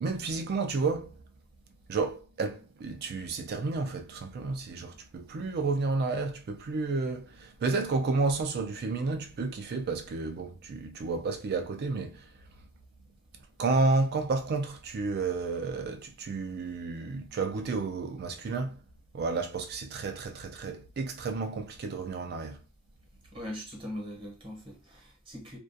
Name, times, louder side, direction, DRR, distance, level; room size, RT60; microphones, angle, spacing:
voice 1, 0.0-1.1 1.9-12.2 13.6-18.8 19.1-22.6, right 3 dB, 50° right, 0.4 m, -31 dB
voice 2, 23.3-25.6, equal, 25° right, 0.9 m, -41 dB
2.3 x 2.2 x 2.5 m
head